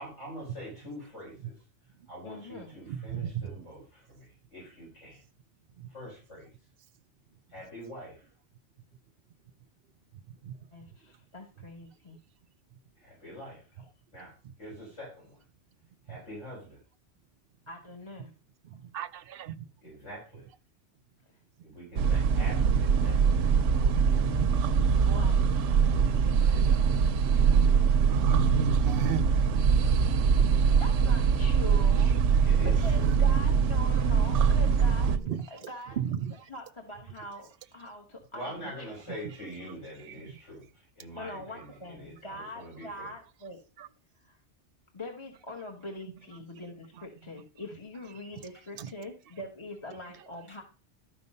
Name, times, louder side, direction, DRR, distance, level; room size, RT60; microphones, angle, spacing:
voice 1, 0.0-1.5 2.1-5.2 5.9-6.5 7.5-8.3 13.0-13.6 14.1-14.3 14.6-15.4 16.1-16.8 19.8-20.4 21.6-23.2 25.9-27.0 32.4-33.1 38.3-43.1, equal, 70° left, 6.3 m, -44 dB
voice 2, 2.2-2.7 10.7-12.2 13.8-13.9 17.7-18.3 25.1-25.6 30.6-35.1 35.5-36.0 36.5-39.2 41.1-43.6 44.2-44.4 44.9-50.6, left 1 dB, 25° left, 1.1 m, -43 dB
voice 3, 2.9-3.6 5.8-5.9 10.4-10.5 16.1-16.2 18.6-19.6 24.2-24.5 26.1-26.3 28.1-29.2 33.0-33.4 35.0-35.5 36.0-36.5 40.2-40.3 43.8-43.9 48.8-48.9, right 7 dB, 60° right, 0.7 m, -34 dB
sound 1, 22.0-35.2, right 6 dB, 80° right, 1.0 m, -23 dB
12.5 x 4.7 x 5.3 m
omnidirectional pair, 1.3 m